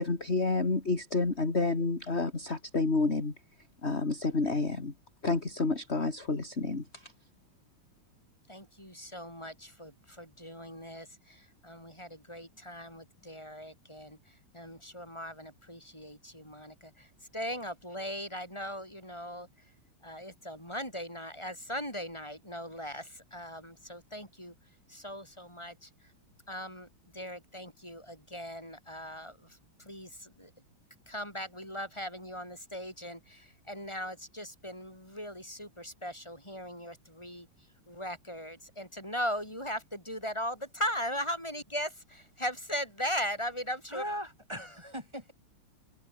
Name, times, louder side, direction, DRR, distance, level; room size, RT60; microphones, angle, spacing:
voice 1, 0.0-3.3 3.8-4.9 5.2-7.1, left 3 dB, 30° left, 3.2 m, -29 dB
voice 2, 8.5-14.2 14.5-19.5 20.0-24.5 24.9-25.9 26.5-26.9 27.1-30.5 31.1-37.5 37.9-44.0, equal, 10° left, 7.8 m, -39 dB
voice 3, 43.9-45.3, equal, 10° right, 7.8 m, -39 dB
omnidirectional pair, 2.3 m